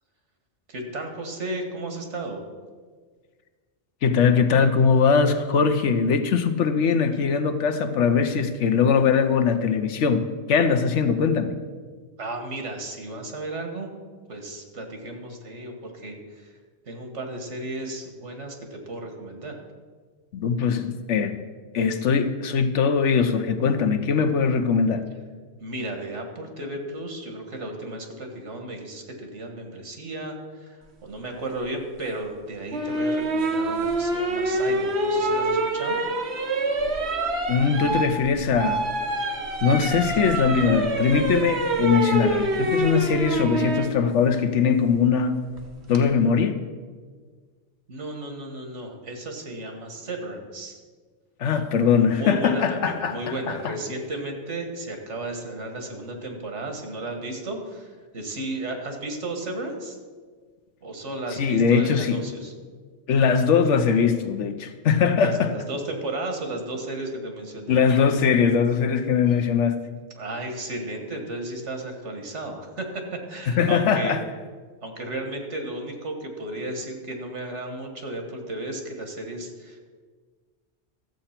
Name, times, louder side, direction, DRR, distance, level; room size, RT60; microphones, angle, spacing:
voice 1, 0.7-2.4 12.2-13.9 14.3-16.5 16.8-19.6 25.6-36.0 47.9-50.8 52.1-60.0 60.8-62.5 65.2-67.8 70.2-74.2 74.8-79.8, right 2 dB, 85° right, 1.9 m, -34 dB
voice 2, 4.0-11.6 20.3-21.4 21.7-25.0 37.5-38.9 39.6-45.4 45.9-46.6 51.4-53.2 53.5-53.7 61.4-62.2 63.1-65.5 67.7-69.9 73.5-74.2, left 6 dB, 85° left, 1.2 m, -21 dB
sound 1, 32.7-43.9 45.6-46.0, right 2 dB, 65° right, 1.5 m, -26 dB
13.0 x 7.9 x 5.8 m
omnidirectional pair, 1.2 m